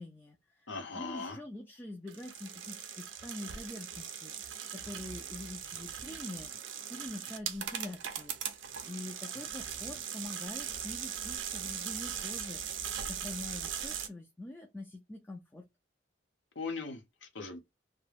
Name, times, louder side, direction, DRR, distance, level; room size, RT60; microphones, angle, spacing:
voice 1, 0.0-6.5 6.9-15.6, left 2 dB, 10° left, 0.3 m, -45 dB
voice 2, 0.7-1.4 16.6-17.6, left 4 dB, 80° left, 0.8 m, -39 dB
sound 1, 2.1-14.1, right 8 dB, 85° right, 0.5 m, -40 dB
2.3 x 2.2 x 3.2 m
head